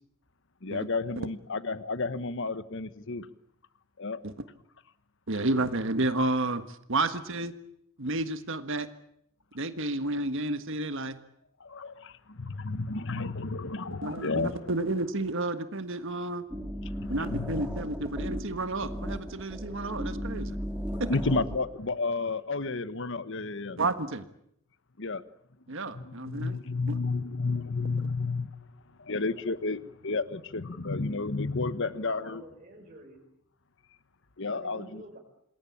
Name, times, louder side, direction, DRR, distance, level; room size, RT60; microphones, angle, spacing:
voice 1, 0.6-3.3 4.0-4.2 11.6-14.7 17.0-17.7 21.1-23.8 25.0-25.2 25.9-28.5 29.0-32.4 34.4-35.0, left 3 dB, 60° left, 13 dB, 1.2 m, -32 dB
voice 2, 5.3-7.5 8.0-8.9 9.5-11.2 14.0-16.4 17.1-20.6 21.0-21.1 23.8-24.2 25.7-26.6 26.9-27.0, right 2 dB, 60° right, 10 dB, 1.6 m, -31 dB
sound 1, 16.5-21.6, equal, 5° right, 3.9 m, -36 dB
voice 3, 31.8-33.2 34.5-35.2, right 1 dB, 35° right, -3 dB, 5.6 m, -48 dB
27.5 x 20.5 x 8.7 m, 0.75 s
head